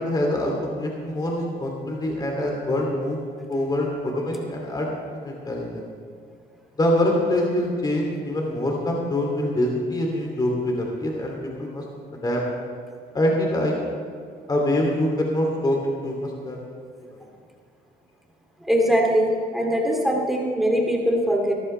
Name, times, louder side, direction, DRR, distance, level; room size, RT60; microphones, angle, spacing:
voice 1, 0.0-3.2 3.5-4.9 5.2-5.8 6.8-11.3 11.6-11.8 12.2-12.4 13.1-13.7 14.5-15.8 16.0-16.6, left 1 dB, 25° left, 0 dB, 2.6 m, -24 dB
voice 2, 18.6-21.5, equal, ahead, -1 dB, 2.6 m, -21 dB
19.0 x 14.0 x 3.3 m, 2.2 s
cardioid pair, 110°, 17 cm